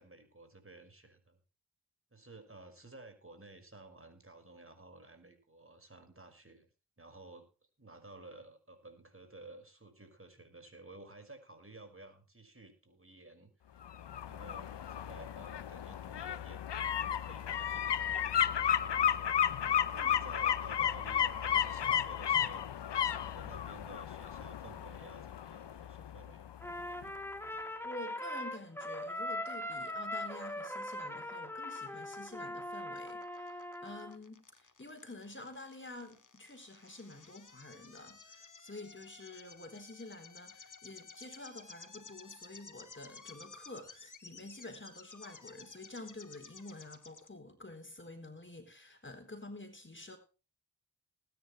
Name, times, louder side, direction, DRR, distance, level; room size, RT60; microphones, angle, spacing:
voice 1, 0.0-1.4 2.1-6.7 7.0-13.8 14.3-16.6 17.0-22.7 23.1-26.5, right 2 dB, 30° right, 7 dB, 5.6 m, -54 dB
sound 1, 13.8-26.7 27.0-27.1, left 9 dB, 80° left, 0.9 m, -33 dB
Trumpet, 26.6-34.2, left 1 dB, 5° left, 2.9 m, -41 dB
voice 2, 27.8-50.2, left 2 dB, 30° left, 7 dB, 4.2 m, -49 dB
sound 2, 33.0-47.3, left 4 dB, 45° left, 2.4 m, -55 dB
19.5 x 10.5 x 3.3 m, 0.34 s
cardioid pair, 45°, 41 cm